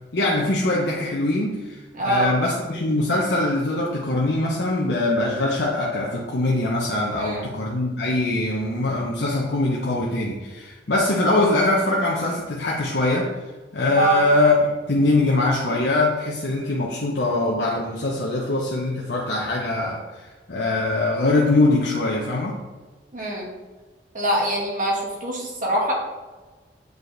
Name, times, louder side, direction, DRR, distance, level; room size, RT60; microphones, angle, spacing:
voice 1, 0.1-13.3 13.7-22.6, left 2 dB, 65° left, -3 dB, 0.8 m, -22 dB
voice 2, 1.9-2.4 7.2-7.5 14.0-14.2 23.1-23.5 24.1-25.9, right 1 dB, 50° right, -2 dB, 1.7 m, -24 dB
7.9 x 4.7 x 3.3 m, 1.3 s
head